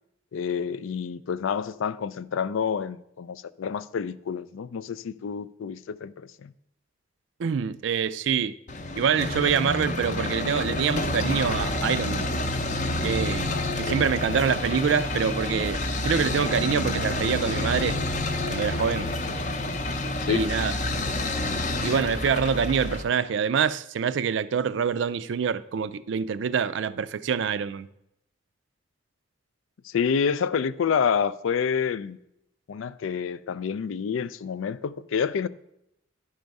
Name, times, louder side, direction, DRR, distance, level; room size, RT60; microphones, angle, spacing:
voice 1, 0.3-6.5 13.5-14.0 20.2-20.5 29.8-32.2 32.7-35.5, left 6 dB, 85° left, 0.4 m, -28 dB
voice 2, 7.4-8.5 8.9-12.3 13.0-18.0 18.5-19.1 20.3-20.7 21.8-27.9, right 7 dB, 65° right, 0.3 m, -26 dB
sound 1, 8.7-23.0, left 2 dB, 40° left, 0.6 m, -29 dB
10.0 x 4.7 x 5.3 m
head